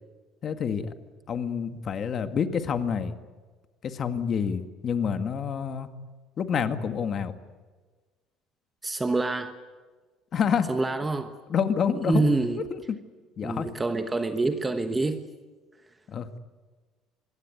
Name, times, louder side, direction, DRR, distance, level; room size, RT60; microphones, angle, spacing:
voice 1, 0.4-0.9 1.3-3.2 3.8-5.9 6.4-7.3 10.3-10.7 11.5-12.2 12.7-13.0 13.4-13.7 16.1-16.4, left 7 dB, 35° left, 8 dB, 1.9 m, -28 dB
voice 2, 8.8-9.5 10.7-11.3 12.0-12.6 13.4-15.2, right 3 dB, 10° right, 8 dB, 1.2 m, -26 dB
25.5 x 21.5 x 9.4 m, 1.4 s
cardioid pair, 160°, 0 cm